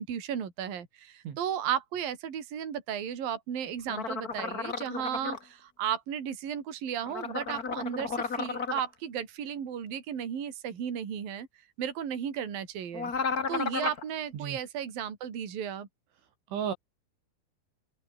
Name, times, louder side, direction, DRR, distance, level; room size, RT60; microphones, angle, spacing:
voice 1, 0.0-11.5 11.8-13.1 13.5-15.9, right 9 dB, 50° right, 4.9 m, -34 dB
voice 2, 1.3-1.4 14.3-14.6 16.5-16.7, right 8 dB, 70° right, 5.5 m, -33 dB
sound 1, 3.9-5.4 7.1-8.8 12.9-14.0, left 5 dB, 50° left, 1.0 m, -33 dB
omnidirectional pair, 5.7 m